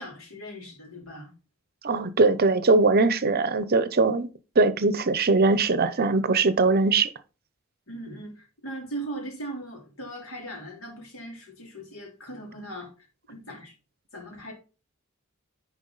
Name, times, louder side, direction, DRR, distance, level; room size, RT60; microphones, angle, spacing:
voice 1, 0.0-1.3 7.9-13.7 14.1-14.5, right 1 dB, 80° left, 3.3 m, -39 dB
voice 2, 1.8-4.3 4.6-7.1, right 3 dB, 45° right, 0.7 m, -21 dB
10.5 x 4.8 x 4.0 m
head